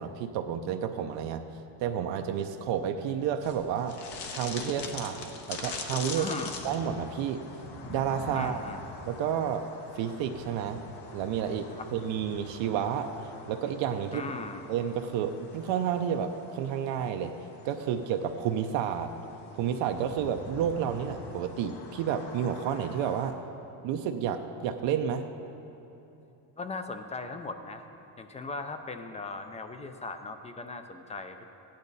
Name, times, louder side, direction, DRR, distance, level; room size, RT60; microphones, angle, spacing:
voice 1, 0.0-1.4 1.8-4.0 4.3-6.4 6.6-7.4 7.9-8.6 9.1-9.7 10.0-10.8 11.1-13.1 13.5-14.2 14.7-17.3 17.6-19.1 19.5-23.4 23.8-25.3, right 8 dB, 75° right, 6 dB, 0.7 m, -30 dB
sound 1, 3.4-23.3, left 4 dB, 60° left, 1.2 m, -43 dB
voice 2, 6.2-6.6 8.3-8.8 11.8-11.9 14.1-14.6 26.6-27.8 28.2-31.4, left 3 dB, 15° left, 7 dB, 0.4 m, -38 dB
15.5 x 10.5 x 4.0 m, 3.0 s
cardioid pair, 150°, 45 cm